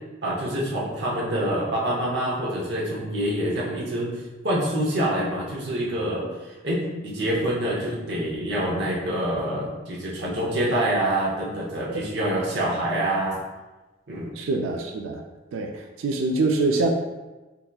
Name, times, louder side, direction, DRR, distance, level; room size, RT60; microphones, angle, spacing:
voice 1, 0.2-13.4 14.1-14.3, right 1 dB, 55° right, -4 dB, 0.7 m, -26 dB
voice 2, 14.4-15.2 15.5-16.9, right 3 dB, 90° right, 3 dB, 0.4 m, -25 dB
3.6 x 2.8 x 2.3 m, 1.1 s
head